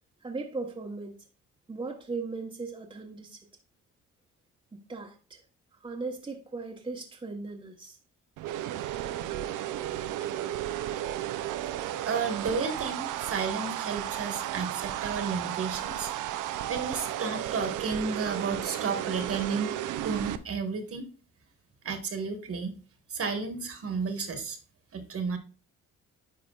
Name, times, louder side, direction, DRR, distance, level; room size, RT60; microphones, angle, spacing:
voice 1, 0.2-1.2 1.7-3.5 4.9-5.4 5.8-8.0 9.9-10.0, right 3 dB, 15° right, 1.0 m, -38 dB
sound 1, 8.4-20.4, right 12 dB, 85° right, 0.6 m, -34 dB
voice 2, 11.9-16.1 16.7-19.7 20.0-21.1 21.8-22.7 23.1-24.6 24.9-25.4, right 5 dB, 50° right, 1.5 m, -32 dB
9.7 x 5.0 x 2.3 m
cardioid pair, 90°, 30 cm